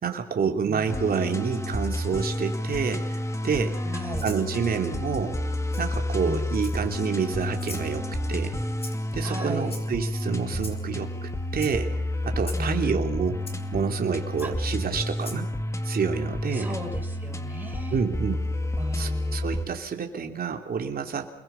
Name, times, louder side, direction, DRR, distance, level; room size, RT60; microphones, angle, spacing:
voice 1, 0.0-3.8 4.2-5.4 5.8-8.5 9.1-11.9 12.2-13.4 13.7-15.5 15.8-16.7 17.9-18.4 18.9-21.3, right 6 dB, 50° right, 4 dB, 3.1 m, -28 dB
sound 1, 0.9-19.7, left 1 dB, 15° left, 2.0 m, -30 dB
voice 2, 3.8-4.3 6.3-6.6 9.2-9.7 12.6-13.1 14.4-14.5 16.5-18.0 18.8-19.4, right 1 dB, 10° right, 2 dB, 6.5 m, -36 dB
Rattle (instrument), 4.1-4.4 5.7-5.8 6.6-7.0 7.6-7.9 8.8-9.1 9.7-10.1 10.6-10.8 11.5-11.7 12.4-12.6 13.5-13.6 14.4-14.5 15.2-15.4, left 3 dB, 30° left, 4.7 m, -41 dB
29.5 x 21.5 x 5.7 m, 0.77 s
cardioid pair, 90°, 20 cm